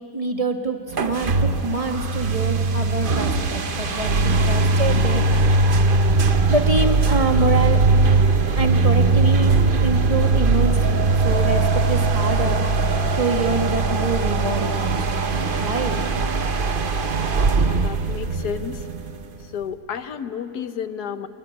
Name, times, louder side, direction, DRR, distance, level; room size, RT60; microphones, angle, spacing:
voice 1, 0.1-5.3 6.5-7.9 8.6-12.6 13.1-15.2 15.6-16.0, right 3 dB, 20° right, 4 dB, 1.8 m, -25 dB
sound 1, 0.9-19.4, right 3 dB, 40° right, 1.0 m, -20 dB
voice 2, 17.6-18.8 19.5-21.3, left 7 dB, 80° left, 10 dB, 1.7 m, -31 dB
25.5 x 21.5 x 9.9 m, 2.6 s
omnidirectional pair, 1.7 m